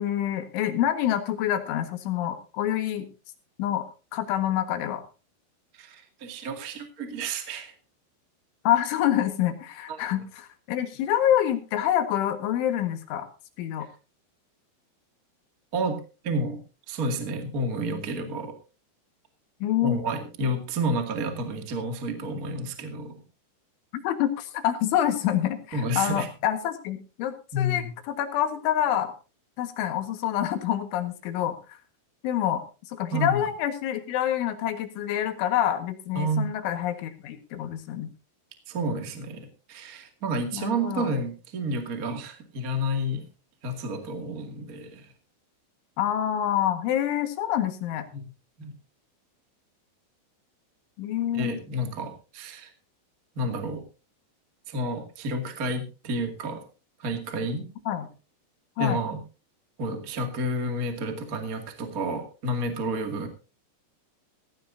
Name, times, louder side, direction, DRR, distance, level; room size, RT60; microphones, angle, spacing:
voice 1, 0.0-3.1 3.6-3.9 4.1-5.0 8.7-13.3 13.6-13.9 19.6-20.0 24.0-29.1 29.6-31.8 32.2-38.1 40.5-41.1 46.0-48.1 51.0-51.6 57.9-58.1 58.8-59.0, left 11 dB, 75° left, 7 dB, 4.0 m, -27 dB
voice 2, 5.7-7.7 9.9-10.0 15.7-16.6 16.9-18.5 19.8-23.1 25.7-26.3 27.5-27.9 33.1-33.4 36.1-36.4 38.7-43.2 43.6-45.1 48.1-48.2 48.6-48.7 51.3-52.7 53.3-53.8 54.7-56.6 57.0-57.7 58.8-59.2 59.8-63.3, right 1 dB, 45° right, 5 dB, 1.1 m, -30 dB
16.5 x 16.0 x 2.7 m, 0.33 s
omnidirectional pair, 5.7 m